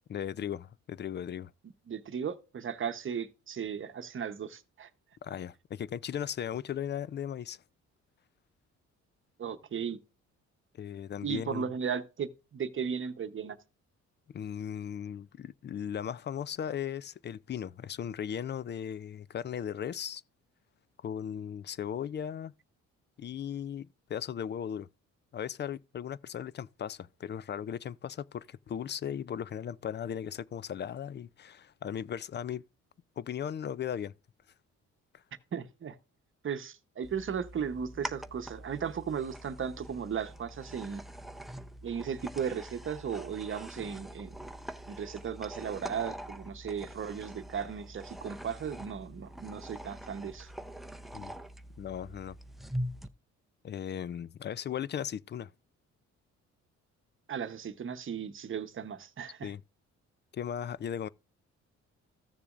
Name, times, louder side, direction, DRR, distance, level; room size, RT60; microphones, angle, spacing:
voice 1, 0.1-1.5 5.2-7.6 10.8-11.7 14.3-20.2 21.0-22.5 23.2-24.9 25.3-32.6 33.2-34.1 51.1-51.3 51.8-52.4 53.6-55.5 59.4-59.6 60.3-61.1, left 9 dB, 35° left, 0.4 m, -37 dB
voice 2, 1.9-4.9 9.4-10.0 11.2-13.6 35.5-36.0 36.4-41.0 41.8-44.4 44.9-50.5 57.3-59.5, right 7 dB, 40° right, 0.9 m, -36 dB
sound 1, 37.0-53.1, right 1 dB, ahead, 0.6 m, -44 dB
14.5 x 6.9 x 2.5 m
cardioid pair, 90°, 30 cm